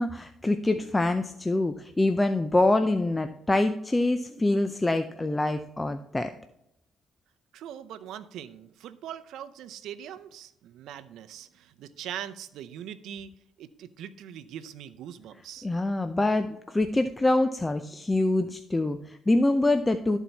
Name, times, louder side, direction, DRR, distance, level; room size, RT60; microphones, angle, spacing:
voice 1, 0.0-6.3 15.6-20.2, left 2 dB, 15° left, 8 dB, 0.5 m, -25 dB
voice 2, 7.5-13.3 13.6-15.7, right 10 dB, 85° right, 11 dB, 0.6 m, -41 dB
13.0 x 4.5 x 4.1 m, 0.81 s
cardioid pair, 90°, 0 cm